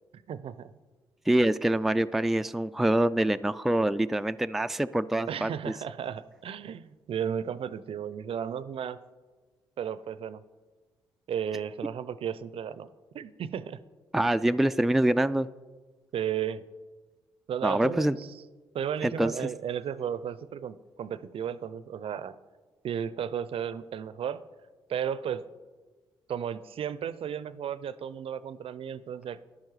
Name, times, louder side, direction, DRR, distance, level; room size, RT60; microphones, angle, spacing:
voice 1, 0.1-0.7 5.3-9.0 9.8-10.4 11.3-12.9 13.1-13.8 16.1-16.6 17.5-18.3 18.7-22.4 22.8-24.4 24.9-25.5 26.3-29.4, right 8 dB, 55° right, 15 dB, 0.5 m, -34 dB
voice 2, 1.3-5.7 14.1-15.5 17.6-18.2 19.0-19.5, right 1 dB, ahead, 11 dB, 0.3 m, -25 dB
10.5 x 9.1 x 4.8 m, 1.3 s
hypercardioid pair, 45°, 11 cm